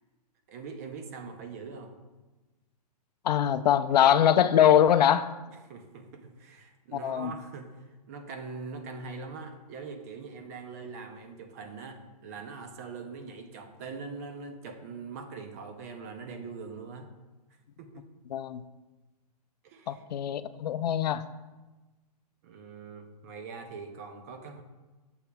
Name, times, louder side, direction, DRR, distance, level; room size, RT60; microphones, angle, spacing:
voice 1, 0.5-1.9 5.5-17.1 17.8-18.0 19.6-20.0 22.4-24.6, right 4 dB, 25° right, 7 dB, 0.4 m, -42 dB
voice 2, 3.2-5.3 6.9-7.3 18.3-18.6 19.9-21.2, left 10 dB, 85° left, 13 dB, 0.4 m, -23 dB
8.2 x 6.9 x 2.2 m, 1.2 s
hypercardioid pair, 165°, 20 cm